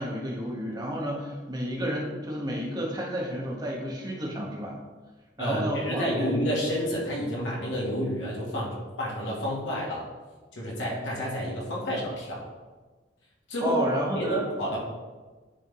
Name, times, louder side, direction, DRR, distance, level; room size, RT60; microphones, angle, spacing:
voice 1, 0.0-4.8 5.4-6.3 13.6-14.5, equal, 20° right, -3 dB, 1.4 m, -31 dB
voice 2, 5.4-10.1 10.5-12.4 13.5-13.8 14.1-14.8, equal, 85° left, -4 dB, 2.2 m, -29 dB
10.0 x 3.8 x 3.7 m, 1.3 s
head